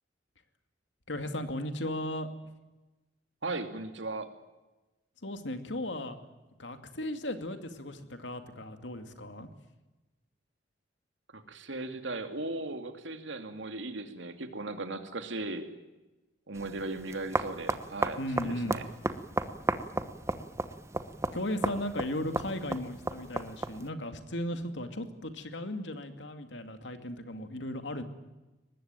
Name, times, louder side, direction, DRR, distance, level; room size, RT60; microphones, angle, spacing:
voice 1, 1.1-2.3 5.2-6.2 6.6-9.5 18.2-18.8 21.3-28.0, left 1 dB, 80° left, 7 dB, 2.4 m, -36 dB
voice 2, 3.4-4.3 11.3-15.7 16.5-18.8, right 2 dB, 85° right, 7 dB, 2.6 m, -37 dB
sound 1, 16.6-23.9, right 2 dB, 15° right, 1.0 m, -34 dB
23.5 x 19.5 x 9.1 m, 1.1 s
head